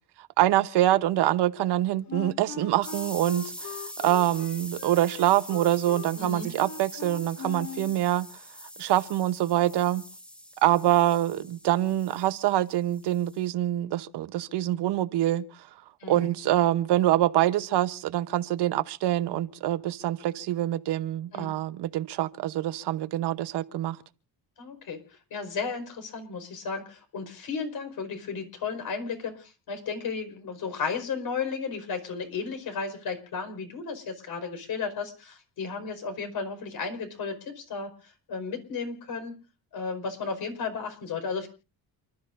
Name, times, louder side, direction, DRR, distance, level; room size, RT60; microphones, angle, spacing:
voice 1, 0.2-8.3 8.8-10.0 10.6-15.4 16.1-24.0, right 13 dB, 75° right, 1.0 m, -25 dB
Wind instrument woodwind instrument, 2.1-8.0, left 6 dB, 45° left, 1.6 m, -40 dB
sound 1, 2.8-13.5, equal, 5° left, 1.9 m, -44 dB
voice 2, 6.1-6.5 16.0-16.3 21.3-21.5 24.6-25.0 25.3-39.4 39.7-41.5, left 5 dB, 60° left, 5.0 m, -34 dB
29.5 x 12.5 x 2.6 m
cardioid pair, 100°, 41 cm